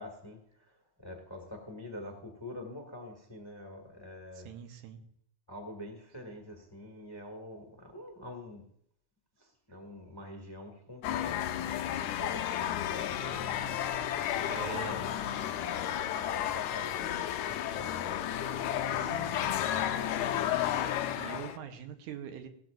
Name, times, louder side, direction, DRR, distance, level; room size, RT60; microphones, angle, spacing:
voice 1, 0.0-4.5 5.5-8.6 9.4-11.7 12.2-13.9 14.6-18.1 18.6-20.0, left 1 dB, 10° left, 2 dB, 1.3 m, -46 dB
voice 2, 4.5-5.0 14.4-15.0 19.0-19.5 21.2-22.5, right 8 dB, 85° right, 6 dB, 2.5 m, -43 dB
sound 1, 11.0-21.6, left 10 dB, 85° left, 2.1 m, -32 dB
17.0 x 13.5 x 2.6 m, 0.70 s
omnidirectional pair, 3.5 m